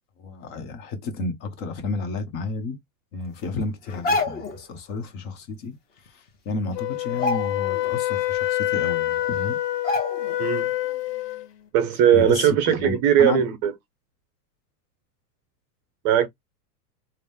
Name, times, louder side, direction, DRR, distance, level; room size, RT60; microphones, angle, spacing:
voice 1, 0.2-2.8 3.1-5.7 6.1-9.6 12.1-13.4, left 3 dB, 40° left, 1.6 m, -31 dB
sound 1, 3.9-4.6 6.1-6.2 6.5-6.7 7.1-7.9 8.3-8.4 9.2-9.3 9.8-10.5 10.8-11.0, left 2 dB, 20° left, 1.4 m, -27 dB
Wind instrument woodwind instrument, 6.7-11.5, left 15 dB, 90° left, 1.1 m, -26 dB
voice 2, 10.4-10.7 11.7-13.7 16.0-16.3, right 9 dB, 30° right, 0.6 m, -19 dB
3.9 x 2.6 x 3.4 m
supercardioid pair, 150°, 47 cm